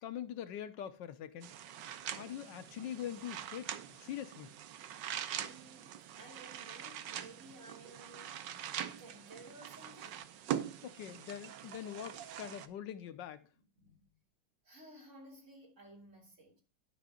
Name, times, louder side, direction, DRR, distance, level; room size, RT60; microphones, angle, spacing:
voice 1, 0.0-1.5 2.1-4.5 10.8-13.5, left 10 dB, 80° left, 1.4 m, -43 dB
sound 1, 1.4-12.7, right 10 dB, 75° right, 1.4 m, -43 dB
voice 2, 5.4-8.5 9.0-10.3 13.8-14.2 14.6-16.6, right 1 dB, 40° right, 3.5 m, -56 dB
11.0 x 5.9 x 3.7 m
omnidirectional pair, 2.0 m